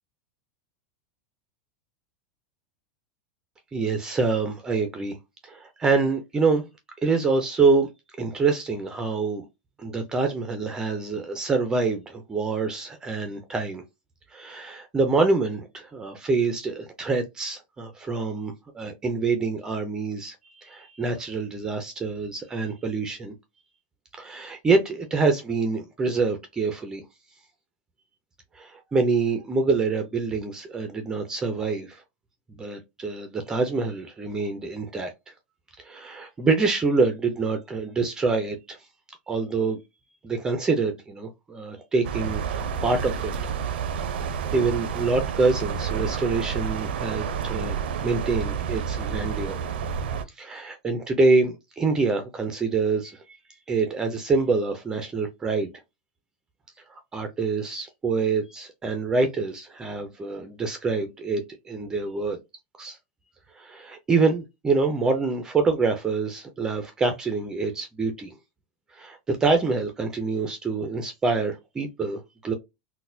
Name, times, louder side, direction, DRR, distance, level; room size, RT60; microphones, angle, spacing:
voice 1, 3.7-5.2 5.4-6.6 7.0-7.9 8.2-9.5 9.8-13.8 14.3-23.3 24.2-27.0 28.5-32.0 32.5-35.3 35.8-38.8 39.3-39.8 40.2-43.3 44.5-49.6 50.3-53.4 53.7-55.7 56.9-62.4 62.8-63.0 63.5-68.3 68.9-72.5, right 4 dB, 10° right, 0.4 m, -26 dB
sound 1, 42.0-50.2, right 7 dB, 90° right, 0.5 m, -29 dB
3.9 x 2.1 x 2.5 m
supercardioid pair, 160°, 5 cm